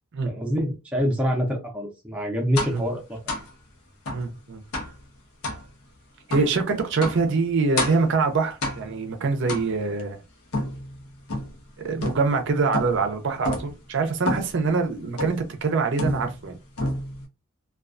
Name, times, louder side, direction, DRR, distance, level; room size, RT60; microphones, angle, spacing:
voice 1, 0.3-3.2, equal, 5° right, -1 dB, 0.5 m, -26 dB
sound 1, 2.5-2.8 3.3-3.5 4.0-4.3 4.7-5.0 5.4-5.6 6.3-6.5 7.0-7.3 7.8-8.1 8.6-9.0 9.5-10.0 10.5-11.6 12.0-12.4 12.7-13.1 13.4-13.7 14.2-14.6 15.2-15.5 16.0-16.5 16.8-17.2, left 1 dB, 85° left, 0.7 m, -30 dB
voice 2, 4.1-4.6 6.3-10.2 11.8-16.6, right 4 dB, 55° right, 5 dB, 0.5 m, -24 dB
2.3 x 2.2 x 2.4 m, 0.26 s
head